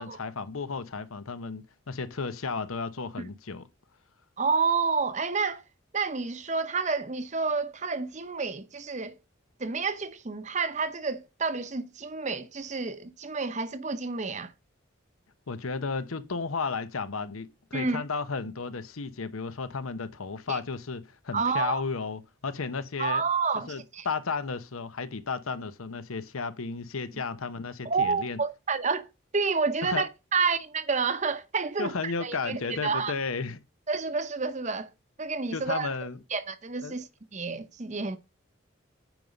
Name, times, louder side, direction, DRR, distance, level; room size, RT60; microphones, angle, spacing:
voice 1, 0.0-3.7 15.5-23.2 23.5-28.4 29.8-30.0 31.8-33.6 35.5-36.2 36.8-37.0, left 4 dB, 85° left, 0.9 m, -33 dB
voice 2, 4.4-5.6 5.9-9.2 9.6-14.5 17.7-18.0 20.5-20.6 21.3-21.8 23.0-24.1 27.8-29.1 29.3-33.1 33.9-34.9 35.2-35.9 36.3-38.2, right 4 dB, 35° right, 0.8 m, -29 dB
9.3 x 5.4 x 5.1 m
head